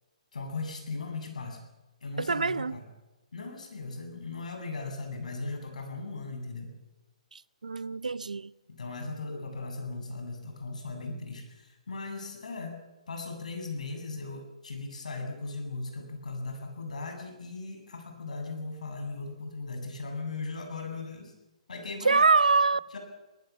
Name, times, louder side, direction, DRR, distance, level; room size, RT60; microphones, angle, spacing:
voice 1, 0.3-1.6 2.0-2.8 3.3-6.7 8.7-12.8 13.1-21.4 21.7-22.2 22.9-23.0, left 3 dB, 80° left, 7.9 m, -38 dB
voice 2, 2.2-2.8 7.3-8.5 22.0-22.8, right 4 dB, 90° right, 0.8 m, -25 dB
23.0 x 19.0 x 7.3 m
hypercardioid pair, 140°, 4 cm